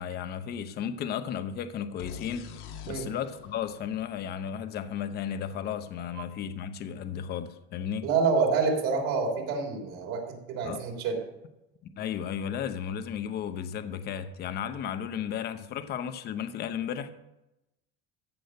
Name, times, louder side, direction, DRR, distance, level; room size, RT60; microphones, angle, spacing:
voice 1, 0.0-2.5 2.8-8.1 10.6-10.8 12.0-17.1, left 8 dB, 35° left, 0.8 m, -34 dB
sound 1, 2.0-5.7, left 7 dB, 90° left, 2.1 m, -46 dB
voice 2, 8.0-11.2, right 4 dB, 60° right, 3.5 m, -27 dB
15.0 x 6.3 x 6.5 m
cardioid pair, 160°, 29 cm